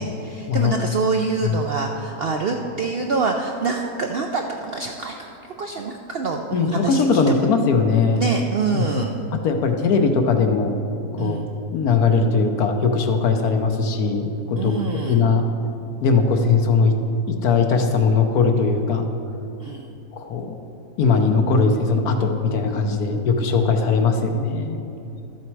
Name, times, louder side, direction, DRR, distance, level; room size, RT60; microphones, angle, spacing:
voice 1, 0.0-5.3 5.6-7.2 8.1-9.1 11.2-11.4 14.6-15.2 19.6-19.9, right 4 dB, 65° right, 2 dB, 0.5 m, -26 dB
voice 2, 6.5-8.2 8.7-9.1 9.4-10.7 11.1-11.5 11.7-14.7 15.1-15.4 16.0-16.9 17.3-19.1 20.1-20.6 21.0-24.8, left 4 dB, 80° left, 5 dB, 1.3 m, -20 dB
13.0 x 7.4 x 4.6 m, 2.8 s
omnidirectional pair, 1.6 m